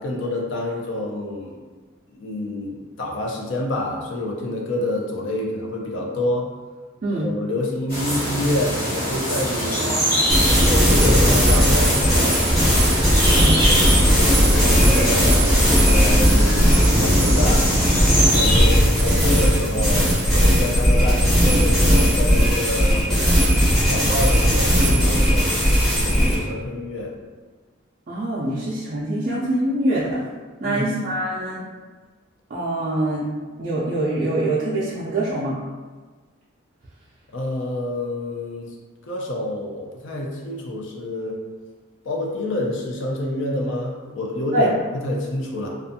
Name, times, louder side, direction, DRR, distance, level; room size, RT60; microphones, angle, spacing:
voice 1, 0.0-1.5 2.1-6.5 7.1-10.0 10.7-12.5 13.3-17.7 18.3-23.0 23.9-27.1 30.6-31.0 37.3-38.7 39.1-41.4 42.1-45.7, left 1 dB, 65° left, -1 dB, 0.5 m, -27 dB
sound 1, 7.9-18.7, equal, 45° left, 1.1 m, -24 dB
sound 2, 10.3-26.4, equal, ahead, 0.6 m, -17 dB
voice 2, 28.1-30.2 30.6-31.7 32.5-33.3 33.6-35.6 44.5-44.7, right 1 dB, 40° right, -8 dB, 0.3 m, -24 dB
2.5 x 2.3 x 2.6 m, 1.4 s
head